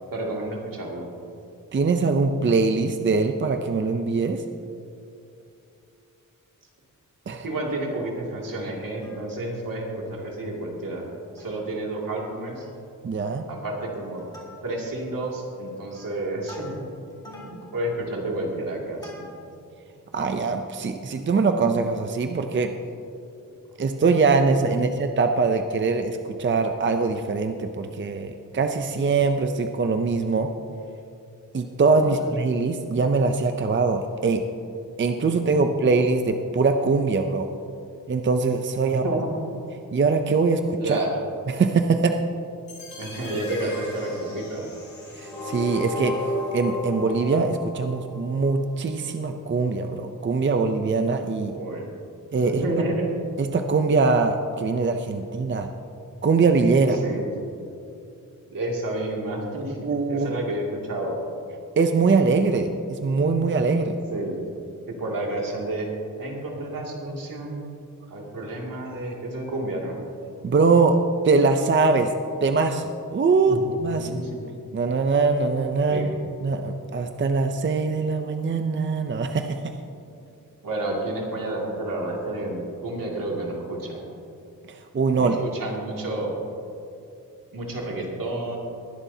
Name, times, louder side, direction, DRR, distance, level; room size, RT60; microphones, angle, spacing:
voice 1, 0.1-1.1 7.3-11.1 11.3-12.7 13.5-14.2 14.6-16.9 17.2-19.3 21.1-21.2 24.6-24.8 31.9-32.3 35.5-35.6 38.8-39.4 40.8-41.2 43.0-44.7 51.5-51.9 52.4-53.1 56.8-57.2 58.5-61.2 64.1-64.4 64.9-65.9 66.2-67.6 68.1-70.0 73.4-74.4 75.9-76.1 80.0-80.3 80.6-84.1 85.1-86.3 87.5-88.6, right 1 dB, 75° right, -2 dB, 2.4 m, -30 dB
voice 2, 1.7-4.4 7.3-7.4 13.0-13.4 20.1-22.7 23.8-30.5 31.5-34.4 35.0-37.5 38.1-39.2 39.9-41.0 41.5-42.2 45.1-46.2 46.5-51.6 52.3-52.6 53.4-55.7 56.2-57.0 59.8-60.3 61.8-64.0 70.4-71.0 71.2-72.1 72.4-74.1 74.7-76.1 76.4-79.7 84.7-85.4, right 4 dB, 35° right, 6 dB, 0.5 m, -22 dB
Plucked string instrument, 9.0-9.6 10.0-10.1 10.4-10.6 11.1-11.7 12.0-12.1 12.5-12.9 13.2-13.6 14.0-15.0 15.5-19.6 20.2-20.3, left 1 dB, 10° left, 2.1 m, -48 dB
sound 1, 42.7-48.7, left 1 dB, 55° left, 3.2 m, -34 dB
20.5 x 11.0 x 2.8 m, 2.6 s
wide cardioid pair, 180°, 33 cm